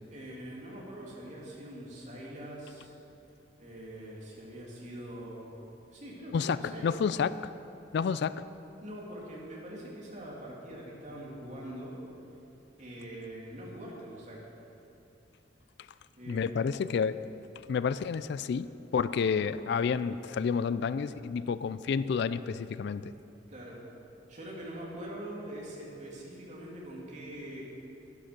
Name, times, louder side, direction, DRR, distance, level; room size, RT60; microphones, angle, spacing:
voice 1, 0.1-2.9 3.6-5.5 5.9-7.0 8.8-11.9 12.8-14.4 16.1-17.0 23.5-23.8 24.3-27.6, right 1 dB, 40° right, -4 dB, 2.8 m, -43 dB
voice 2, 6.3-7.5 7.9-8.4 16.3-17.2 17.7-23.1, left 6 dB, 65° left, 15 dB, 0.3 m, -30 dB
11.5 x 11.5 x 6.0 m, 2.8 s
head